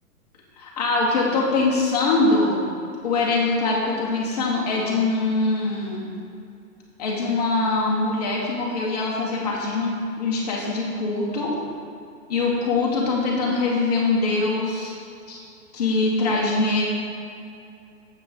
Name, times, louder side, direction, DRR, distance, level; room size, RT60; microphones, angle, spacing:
voice 1, 0.6-2.6 3.0-6.1 7.0-11.5 12.3-14.9 15.3-15.4 15.7-16.8, left 3 dB, 25° left, -4 dB, 1.3 m, -23 dB
9.0 x 7.5 x 5.2 m, 2.5 s
hypercardioid pair, 180°, 47 cm